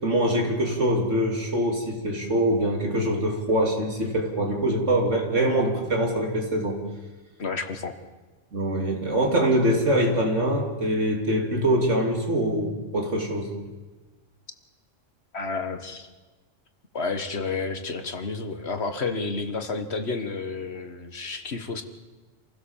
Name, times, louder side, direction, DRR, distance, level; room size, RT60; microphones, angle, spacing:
voice 1, 0.0-6.9 8.5-13.5, right 1 dB, 70° right, 2 dB, 3.4 m, -24 dB
voice 2, 7.4-7.9 15.3-16.1 16.9-21.8, left 4 dB, 55° left, 8 dB, 1.7 m, -30 dB
27.0 x 16.0 x 7.3 m, 1.3 s
omnidirectional pair, 1.3 m